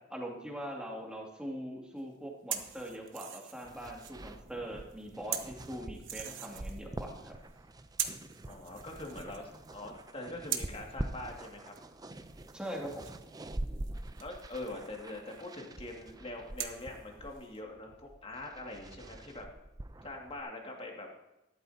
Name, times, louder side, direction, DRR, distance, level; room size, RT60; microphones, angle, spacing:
voice 1, 0.1-7.4 12.5-13.0, equal, 5° right, -1 dB, 2.4 m, -42 dB
sound 1, 2.5-4.5 4.8-7.1 7.4-7.6 8.0-10.1 10.4-11.9 12.2-15.5 16.5-17.6, right 10 dB, 85° right, 1.1 m, -43 dB
sound 2, 3.6-20.4, right 1 dB, 20° right, 0.6 m, -45 dB
voice 2, 8.5-11.7 14.2-19.5 20.0-21.1, left 2 dB, 30° left, 1 dB, 2.2 m, -43 dB
13.0 x 11.5 x 2.8 m, 0.95 s
head